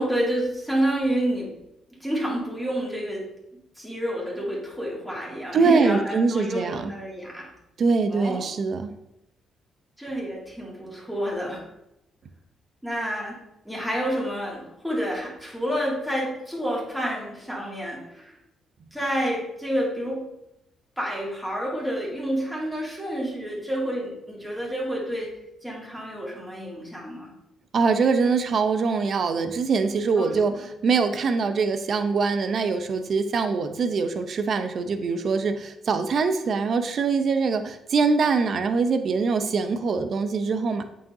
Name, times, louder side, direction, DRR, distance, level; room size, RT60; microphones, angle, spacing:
voice 1, 0.0-1.6 1.9-7.5 8.1-8.4 10.0-11.6 12.8-13.4 13.6-18.3 18.9-20.3 21.0-25.3 25.6-27.3 30.2-30.6, equal, 5° right, -4 dB, 2.4 m, -29 dB
voice 2, 5.5-6.9 7.8-8.9 27.7-40.8, right 4 dB, 55° right, 8 dB, 0.6 m, -23 dB
8.3 x 4.8 x 2.7 m, 0.85 s
cardioid pair, 90°, 0 cm